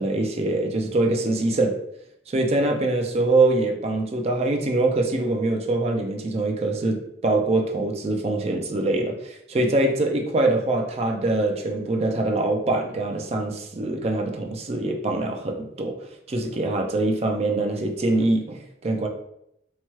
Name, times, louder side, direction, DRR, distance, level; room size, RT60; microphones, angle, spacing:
voice 1, 0.0-1.8 2.3-19.1, right 2 dB, 35° right, 3 dB, 0.4 m, -24 dB
2.8 x 2.2 x 3.0 m, 0.77 s
head